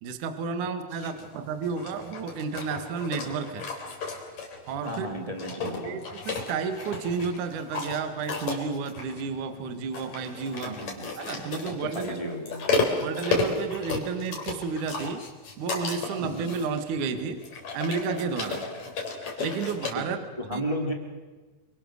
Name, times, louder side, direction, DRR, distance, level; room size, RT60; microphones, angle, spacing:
voice 1, 0.0-3.7 4.7-5.1 5.8-10.8 11.2-12.2 12.9-15.2 15.6-17.4 17.7-18.6 19.4-20.2 20.5-20.6, right 5 dB, 55° right, 8 dB, 2.4 m, -31 dB
voice 2, 0.9-1.2 4.8-6.0 10.6-11.1 11.8-12.6 16.2-16.5 18.4-18.6 19.9-20.9, equal, 10° right, 1 dB, 1.6 m, -34 dB
sound 1, 1.0-19.9, left 3 dB, 40° left, 4.5 m, -33 dB
28.0 x 25.0 x 6.6 m, 1.3 s
omnidirectional pair, 5.7 m